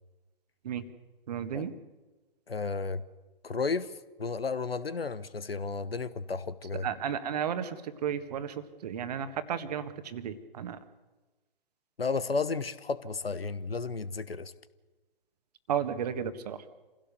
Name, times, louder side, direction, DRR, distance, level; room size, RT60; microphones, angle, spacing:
voice 1, 1.3-1.7 6.8-10.8 15.7-16.6, right 8 dB, 40° right, 11 dB, 1.6 m, -33 dB
voice 2, 2.5-3.0 3.4-3.9 4.2-6.9 12.0-14.5, left 4 dB, 75° left, 16 dB, 1.2 m, -33 dB
27.0 x 16.5 x 6.9 m, 1.2 s
figure-of-eight pair, 125°, 30 cm